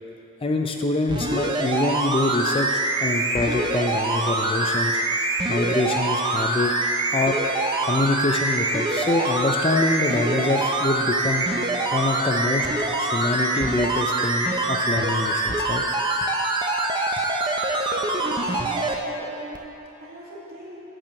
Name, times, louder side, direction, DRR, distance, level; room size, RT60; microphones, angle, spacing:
voice 1, 0.4-5.0 5.5-6.7 7.1-7.4 7.8-11.5 11.9-12.7 13.0-15.8, left 2 dB, 25° left, 3 dB, 0.5 m, -25 dB
sound 1, 1.1-18.9 19.5-19.6, right 2 dB, 25° right, 0.7 m, -24 dB
voice 2, 18.1-19.6 20.0-20.8, right 1 dB, 45° right, -6 dB, 2.3 m, -38 dB
11.0 x 4.6 x 7.5 m, 2.9 s
head